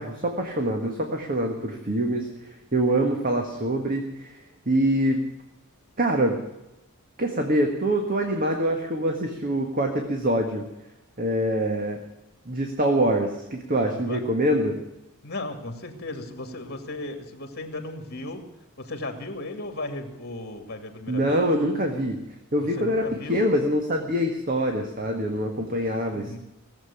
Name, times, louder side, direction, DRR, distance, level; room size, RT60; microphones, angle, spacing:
voice 1, 0.0-5.2 6.0-6.4 7.2-10.6 11.2-12.0 12.4-14.7 21.1-22.2 22.5-26.4, right 1 dB, 40° right, 3 dB, 1.7 m, -25 dB
voice 2, 15.2-18.4 18.8-21.5 22.6-23.4 26.1-26.4, left 2 dB, 45° left, 6 dB, 2.5 m, -36 dB
18.5 x 8.0 x 9.9 m, 0.96 s
head